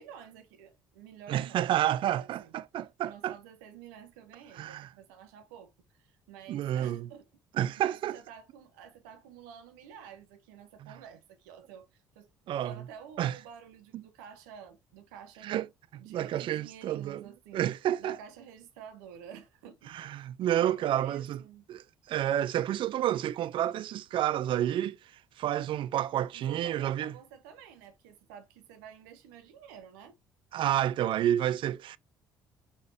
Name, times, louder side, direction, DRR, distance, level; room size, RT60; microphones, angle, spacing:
voice 1, 0.0-2.5 3.0-5.7 6.0-7.3 7.8-12.3 12.6-15.5 15.9-17.6 18.0-20.1 20.4-21.7 26.3-30.2, right 8 dB, 85° right, 0.9 m, -50 dB
voice 2, 1.3-3.4 4.5-4.9 6.5-7.1 7.6-8.2 10.8-11.0 12.5-12.7 13.2-13.4 13.9-14.0 15.4-15.7 15.9-17.2 17.5-18.2 19.9-21.4 21.7-25.0 25.4-27.2 30.5-32.0, right 11 dB, 55° right, 0.4 m, -30 dB
5.2 x 3.9 x 2.6 m
hypercardioid pair, 60°, 10 cm